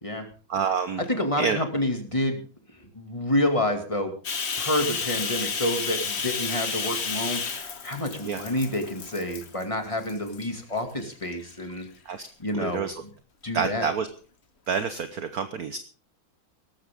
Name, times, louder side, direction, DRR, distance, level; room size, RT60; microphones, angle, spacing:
voice 1, 0.5-1.0 1.4-1.6 8.2-8.4 12.1-12.3 12.6-12.9 13.5-14.1 14.7-15.8, right 6 dB, 55° right, 9 dB, 1.3 m, -27 dB
voice 2, 1.1-2.4 2.9-4.1 4.6-11.9 12.4-13.1 13.4-13.9, left 1 dB, 15° left, 5 dB, 2.2 m, -28 dB
Bathtub (filling or washing), 4.2-9.6 10.1-10.5 11.0-11.8, left 5 dB, 35° left, 1.3 m, -31 dB
18.5 x 14.5 x 3.6 m, 0.40 s
omnidirectional pair, 2.2 m